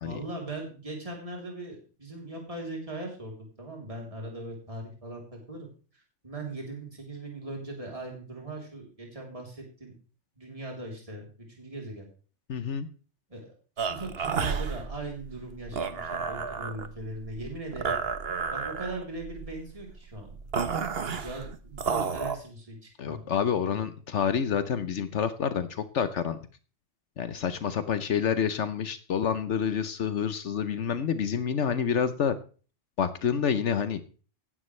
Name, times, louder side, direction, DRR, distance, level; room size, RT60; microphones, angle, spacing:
voice 1, 0.0-5.7 5.9-9.9 10.4-12.1 13.3-18.0 18.5-20.4 21.2-23.2 23.6-23.9, right 2 dB, 30° right, 0 dB, 3.5 m, -39 dB
voice 2, 12.5-12.9 23.0-26.4 27.2-32.4 33.0-34.0, left 7 dB, 70° left, 11 dB, 1.2 m, -28 dB
sound 1, 13.8-22.4, right 6 dB, 55° right, 1.3 m, -32 dB
16.5 x 11.0 x 3.3 m, 0.37 s
omnidirectional pair, 1.2 m